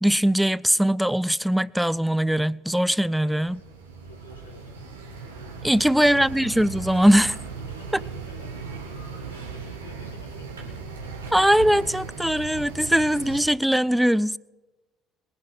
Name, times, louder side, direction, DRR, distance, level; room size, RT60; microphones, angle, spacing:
voice 1, 0.0-3.6 5.6-7.4 11.3-14.4, equal, 5° right, 0.4 m, -21 dB
voice 2, 3.0-3.6 4.0-4.7 5.6-6.3 7.6-10.7 11.0-11.1, left 3 dB, 85° left, 2.9 m, -50 dB
sound 1, 3.3-13.4, right 4 dB, 80° right, 2.0 m, -38 dB
22.0 x 9.6 x 4.9 m
figure-of-eight pair, 55°, 0 cm